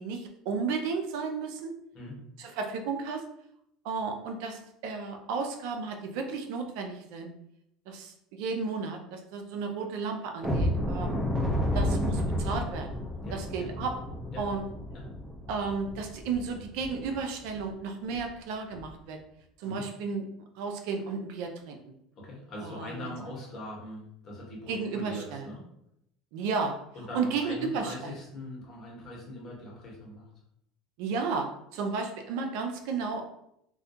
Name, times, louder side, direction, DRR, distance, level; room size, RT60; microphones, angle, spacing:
voice 1, 0.0-1.7 2.4-3.2 3.8-7.3 7.9-11.2 11.7-12.9 13.3-13.9 14.4-14.6 15.5-19.2 19.6-20.2 20.6-21.8 22.6-23.1 24.7-25.4 26.3-26.8 27.1-28.1 31.0-33.2, right 5 dB, 70° right, 4 dB, 0.4 m, -33 dB
sound 1, 10.4-17.1 17.5-17.7 18.1-18.2 18.7-18.9, left 1 dB, 5° right, 0.6 m, -31 dB
voice 2, 13.2-13.7 14.3-14.4 14.9-15.0 19.6-19.8 22.2-25.6 26.9-30.2, left 1 dB, 45° left, -2 dB, 1.0 m, -41 dB
2.3 x 2.1 x 2.7 m, 0.78 s
supercardioid pair, 100°, 0 cm